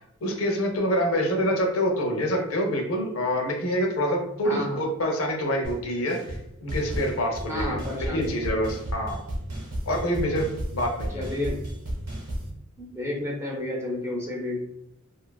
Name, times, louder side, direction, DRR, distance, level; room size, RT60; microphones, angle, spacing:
voice 1, 0.2-9.2 9.9-10.5 10.7-11.2, equal, 70° left, 2 dB, 0.6 m, -26 dB
voice 2, 4.4-4.8 7.5-8.3 11.1-11.6 12.8-14.7, left 1 dB, 10° right, -2 dB, 0.5 m, -31 dB
sound 1, 5.6-5.8 6.1-6.4 6.7-12.5, right 1 dB, 90° right, 0.9 m, -33 dB
2.8 x 2.3 x 2.2 m, 0.81 s
head